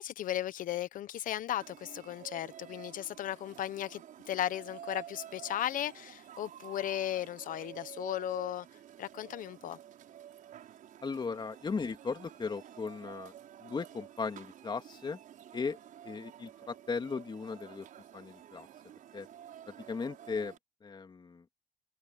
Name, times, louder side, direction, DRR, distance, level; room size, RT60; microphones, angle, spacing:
voice 1, 0.0-4.0 4.3-8.7 9.0-9.8, left 12 dB, 85° left, 1.0 m, -36 dB
sound 1, 1.6-20.6, right 10 dB, 85° right, 6.8 m, -51 dB
voice 2, 11.0-13.3 13.6-15.2 15.5-15.8 16.0-17.9 18.1-18.7 19.1-19.3 19.9-20.5 20.8-21.4, left 5 dB, 35° left, 2.8 m, -37 dB
cardioid pair, 120°, 14 cm